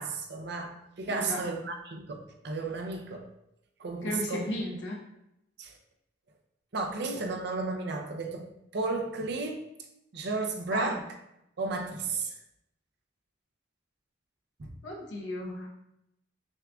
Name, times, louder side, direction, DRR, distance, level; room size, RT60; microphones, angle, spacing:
voice 1, 0.0-3.3 3.8-4.5 5.6-5.7 6.7-8.5 8.7-9.7 10.1-11.0 11.6-12.3 14.6-14.7, right 3 dB, 60° right, 4 dB, 0.5 m, -33 dB
voice 2, 1.1-1.5 4.0-5.0 10.7-11.0 14.8-15.7, left 1 dB, 75° left, -2 dB, 0.9 m, -34 dB
6.3 x 2.5 x 2.3 m, 0.84 s
head